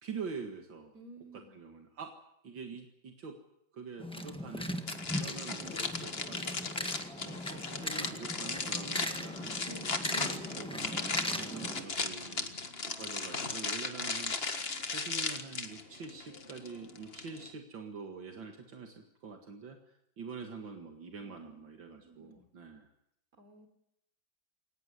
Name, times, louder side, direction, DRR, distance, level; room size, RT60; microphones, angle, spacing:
voice 1, 0.0-0.9 1.5-2.1 2.4-3.3 3.7-4.7 5.2-6.6 7.2-9.6 10.1-12.5 13.0-22.9, right 5 dB, 75° right, 4 dB, 2.6 m, -45 dB
voice 2, 0.9-1.6 12.2-12.9 21.2-21.6 22.0-22.5 23.3-23.7, right 2 dB, 45° right, 7 dB, 4.1 m, -56 dB
sound 1, 4.0-11.8, equal, 5° left, 1.3 m, -39 dB
sound 2, 4.9-17.5, left 4 dB, 35° left, 1.8 m, -37 dB
23.0 x 19.0 x 9.9 m, 0.79 s
omnidirectional pair, 2.1 m